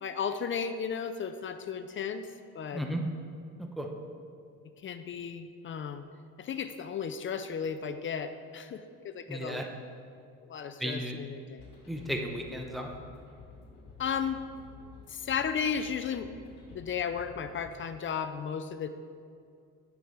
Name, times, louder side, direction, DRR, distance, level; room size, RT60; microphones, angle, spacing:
voice 1, 0.0-2.3 2.5-2.8 4.8-6.0 6.4-9.6 10.5-11.6 14.0-14.4 15.1-16.3 16.7-18.9, left 7 dB, 40° left, 10 dB, 0.5 m, -34 dB
voice 2, 2.7-3.0 3.6-3.9 9.3-9.7 10.8-11.2 11.9-12.9, equal, ahead, 2 dB, 0.8 m, -34 dB
sound 1, 11.6-17.7, left 4 dB, 65° left, 2.2 m, -52 dB
8.4 x 6.1 x 5.0 m, 2.4 s
cardioid pair, 100°, 33 cm